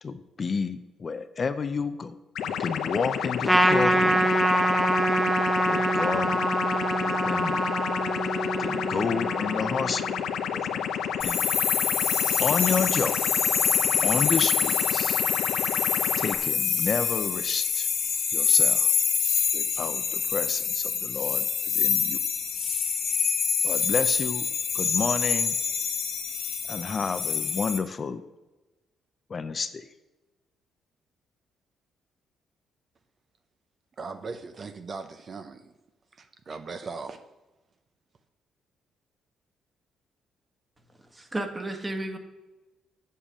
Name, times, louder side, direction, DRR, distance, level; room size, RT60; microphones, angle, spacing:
voice 1, 0.0-2.2 2.5-4.3 5.7-6.4 7.0-7.6 8.6-10.3 10.5-10.9 11.2-11.4 12.4-13.2 14.0-15.2 16.2-17.9 18.3-18.9 19.5-22.2 23.6-24.5 24.7-25.5 26.7-28.2 29.3-29.9, left 5 dB, 40° left, 10 dB, 0.6 m, -30 dB
sound 1, 2.3-16.3, left 8 dB, 75° left, 0.7 m, -30 dB
Trumpet, 3.5-10.2, right 1 dB, 5° right, 1.0 m, -25 dB
sound 2, 11.2-27.8, left 7 dB, 60° left, 1.3 m, -26 dB
voice 2, 34.0-35.6 36.2-37.2, right 4 dB, 45° right, 8 dB, 0.6 m, -38 dB
voice 3, 41.0-42.2, right 1 dB, 20° right, 5 dB, 1.5 m, -33 dB
7.5 x 6.8 x 7.3 m, 1.1 s
cardioid pair, 90°, 0 cm